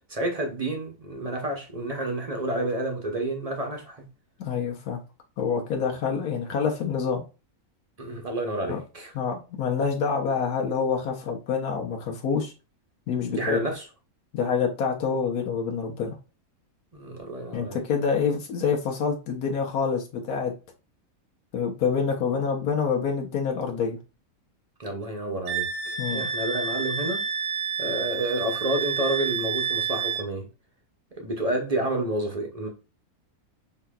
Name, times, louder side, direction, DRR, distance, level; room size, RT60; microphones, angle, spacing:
voice 1, 0.1-4.1 8.0-9.1 13.3-13.8 16.9-17.8 24.8-27.2 27.8-30.5 31.2-32.7, right 1 dB, 35° right, 0.6 m, -30 dB
voice 2, 4.4-5.0 5.4-7.2 8.7-8.8 9.1-12.5 13.1-13.6 14.3-16.2 17.5-20.5 21.5-24.0 26.0-26.3, left 6 dB, 85° left, 1.3 m, -27 dB
Wind instrument woodwind instrument, 25.5-30.3, right 6 dB, 90° right, 1.1 m, -29 dB
4.8 x 2.8 x 2.3 m
omnidirectional pair, 1.5 m